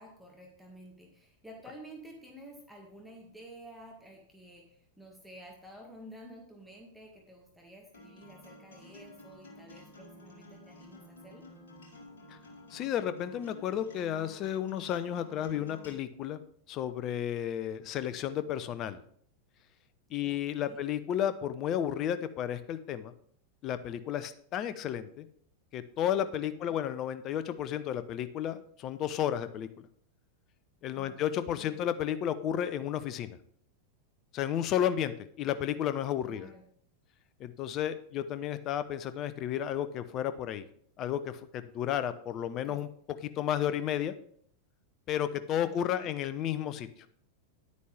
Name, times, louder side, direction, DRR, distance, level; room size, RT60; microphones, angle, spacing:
voice 1, 0.0-11.4 20.2-20.8 26.5-26.8 31.0-31.9 36.3-36.6 42.6-42.8 45.6-46.2, right 1 dB, ahead, -1 dB, 2.0 m, -51 dB
Acoustic guitar, 7.9-15.9, left 1 dB, 65° left, 2.1 m, -51 dB
voice 2, 12.7-16.4 16.7-19.0 20.1-23.1 23.6-25.3 25.7-29.9 30.8-33.4 34.3-36.5 37.4-40.6 41.0-42.9 43.4-44.1 45.1-46.9, left 10 dB, 35° left, 12 dB, 0.7 m, -32 dB
10.5 x 9.4 x 3.4 m, 0.64 s
figure-of-eight pair, 90°, 0 cm